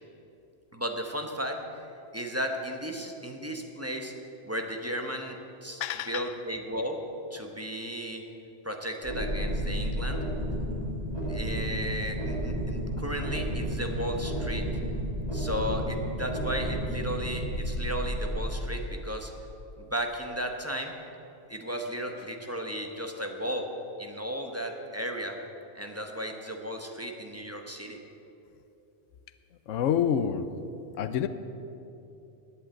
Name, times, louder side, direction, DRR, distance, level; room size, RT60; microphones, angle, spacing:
voice 1, 0.7-1.6 2.1-4.1 4.4-5.8 6.1-7.0 7.3-8.3 8.6-10.2 11.0-14.7 15.3-19.3 19.8-20.9 21.5-23.7 24.0-25.4 25.7-28.0, equal, 15° right, 3 dB, 0.9 m, -34 dB
voice 2, 5.8-6.2 29.7-30.5 31.0-31.3, left 8 dB, 85° left, 11 dB, 0.9 m, -27 dB
sound 1, 9.0-18.5, equal, 30° right, 2.3 m, -32 dB
10.5 x 8.4 x 8.7 m, 2.8 s
omnidirectional pair, 1.2 m